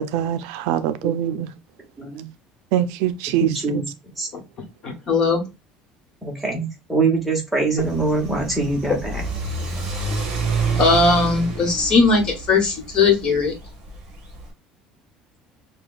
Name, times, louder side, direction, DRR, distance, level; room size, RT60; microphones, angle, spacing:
voice 1, 0.0-1.5 2.7-3.8, right 11 dB, 85° right, 0.4 m, -23 dB
voice 2, 3.4-3.9 4.2-4.3 6.2-9.2 9.6-9.8, right 3 dB, ahead, 1.0 m, -23 dB
voice 3, 4.8-5.4 10.8-13.5, left 3 dB, 35° left, 1.2 m, -18 dB
Car / Accelerating revving vroom, 7.8-14.5, right 4 dB, 30° right, 1.3 m, -28 dB
5.5 x 2.2 x 2.4 m
cardioid pair, 175°, 2 cm